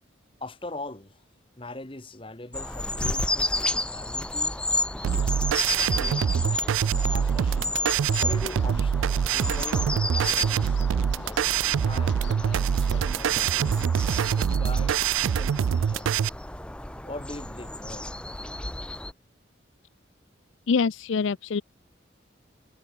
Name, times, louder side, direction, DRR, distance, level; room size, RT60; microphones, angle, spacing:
voice 1, 0.4-1.2 1.6-4.6 5.2-6.7 7.1-7.7 8.2-10.8 11.2-13.9 14.3-15.0 15.3-16.2 17.0-18.1, left 2 dB, 25° left, 1.3 m, -42 dB
sound 1, 2.5-13.7, left 5 dB, 65° left, 5.2 m, -52 dB
sound 2, 2.5-19.1, left 1 dB, 5° left, 0.7 m, -32 dB
sound 3, 5.0-16.3, right 8 dB, 85° right, 0.3 m, -25 dB
voice 2, 20.7-21.6, left 5 dB, 85° left, 0.5 m, -25 dB
head